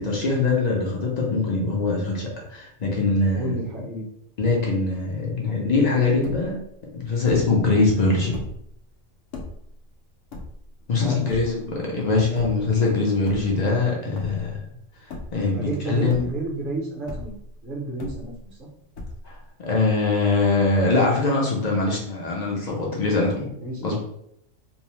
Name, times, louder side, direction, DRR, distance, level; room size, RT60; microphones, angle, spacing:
voice 1, 0.0-3.5 4.4-6.6 7.0-8.4 10.9-14.6 15.3-16.2 19.2-19.4 19.6-23.5 23.8-24.0, left 3 dB, 50° left, -2 dB, 0.5 m, -22 dB
voice 2, 3.3-4.1 5.4-5.8 10.9-11.9 15.5-17.3 17.6-18.7 23.6-23.9, right 2 dB, 45° right, -2 dB, 0.8 m, -31 dB
sound 1, 6.2-6.7 7.3-7.7 8.2-8.7 9.3-9.7 10.3-10.9 11.3-11.8 12.3-12.7 13.2-13.9 14.2-14.7 15.1-15.6 16.0-16.6 17.1-17.6 18.0-18.6 18.9-19.5, left 2 dB, 75° left, 0.9 m, -37 dB
2.7 x 2.0 x 3.0 m, 0.74 s
omnidirectional pair, 1.4 m